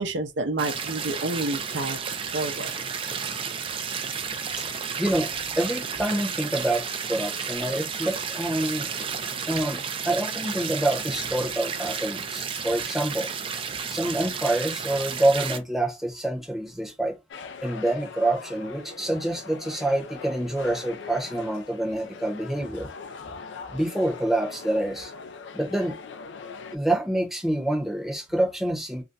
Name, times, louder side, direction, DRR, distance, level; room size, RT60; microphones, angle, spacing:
voice 1, 0.0-2.0 2.3-2.7, right 2 dB, 70° right, 0.6 m, -29 dB
sound 1, 0.6-15.6, right 6 dB, 30° right, 0.4 m, -32 dB
voice 2, 5.0-5.3 5.6-8.9 9.5-9.8 10.0-13.3 13.9-17.2 17.6-22.9 23.7-25.1 25.5-26.0 26.7-29.0, right 1 dB, ahead, 0.8 m, -27 dB
sound 2, 17.3-26.8, left 4 dB, 70° left, 0.4 m, -41 dB
2.5 x 2.1 x 3.9 m
head